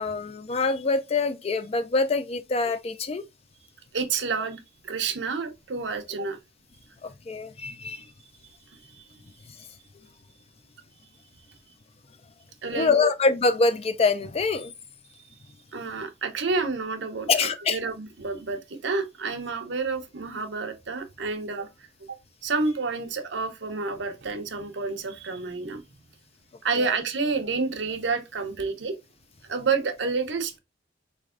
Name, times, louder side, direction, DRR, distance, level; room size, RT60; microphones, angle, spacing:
voice 1, 0.0-3.2 7.0-8.1 12.7-14.7 17.3-17.8 26.8-26.9, left 4 dB, 30° left, 0.4 m, -25 dB
voice 2, 3.9-6.4 8.9-9.1 12.6-13.1 15.7-21.7 22.1-22.2 22.4-25.8 26.6-29.0 29.5-30.6, right 4 dB, 65° right, 0.7 m, -29 dB
4.2 x 3.2 x 2.4 m
head